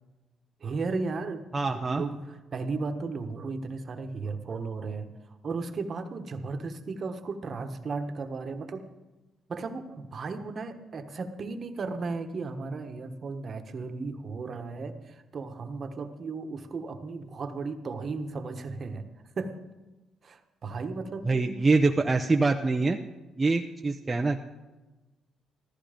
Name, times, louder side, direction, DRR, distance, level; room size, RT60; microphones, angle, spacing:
voice 1, 0.6-5.1 5.4-8.9 9.5-19.0 19.4-19.6 20.2-21.6, right 4 dB, 45° right, 7 dB, 1.3 m, -35 dB
voice 2, 1.5-2.0 21.3-23.0 23.4-24.4, right 3 dB, 25° right, 3 dB, 0.7 m, -24 dB
14.5 x 14.0 x 5.1 m, 1.1 s
cardioid pair, 90°, 0 cm